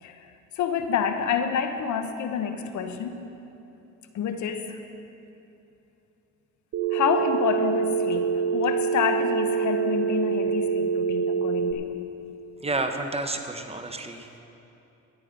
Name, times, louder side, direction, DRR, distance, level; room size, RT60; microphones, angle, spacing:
voice 1, 0.0-3.1 4.1-4.8 6.9-11.9, left 7 dB, 70° left, 7 dB, 1.0 m, -28 dB
Telephone, 6.7-11.7, right 6 dB, 65° right, 1.1 m, -25 dB
voice 2, 12.6-14.4, right 2 dB, 20° right, 6 dB, 1.0 m, -30 dB
13.5 x 9.4 x 5.3 m, 2.8 s
cardioid pair, 90°, 30 cm